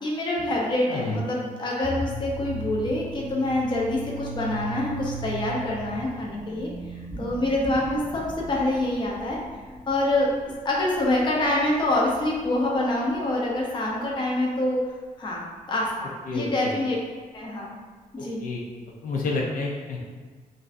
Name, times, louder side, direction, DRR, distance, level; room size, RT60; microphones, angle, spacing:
voice 1, 0.0-6.7 7.2-8.2 8.5-9.4 9.9-10.3 10.6-14.8 15.2-17.0 17.3-17.7 18.1-18.4, left 1 dB, 30° left, -3 dB, 0.7 m, -26 dB
sound 1, 1.8-13.1, right 2 dB, ahead, 0.4 m, -38 dB
voice 2, 16.3-16.7 18.4-18.7 19.0-20.0, left 3 dB, 70° left, -2 dB, 0.6 m, -29 dB
5.2 x 2.6 x 2.6 m, 1.5 s
wide cardioid pair, 160°, 15 cm